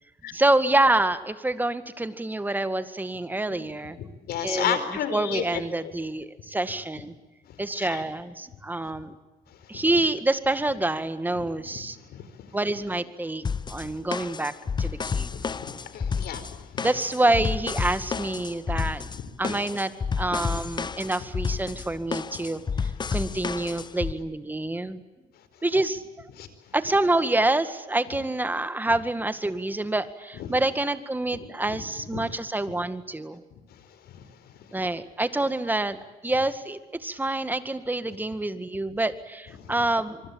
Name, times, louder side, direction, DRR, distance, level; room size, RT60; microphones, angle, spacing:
voice 1, 0.3-4.0 4.4-4.8 5.1-7.1 7.6-9.1 9.7-12.0 12.5-13.4 13.7-14.5 14.8-15.3 16.8-19.1 19.4-19.9 20.2-25.0 25.6-26.0 26.7-33.4 34.7-40.2, right 2 dB, 10° right, 12 dB, 2.0 m, -27 dB
voice 2, 4.0-5.9 7.4-8.0 9.5-9.8 11.3-12.6 13.8-14.0 15.0-16.9 19.1-19.6 23.0-23.4 25.3-25.6 26.3-26.7 30.3-30.5 31.7-31.8 32.1-32.2 33.5-34.7 39.6-39.8, left 9 dB, 70° left, 11 dB, 4.8 m, -35 dB
sound 1, 13.4-24.1, left 5 dB, 25° left, 0.9 m, -30 dB
26.0 x 24.0 x 8.8 m, 1.2 s
cardioid pair, 110°, 17 cm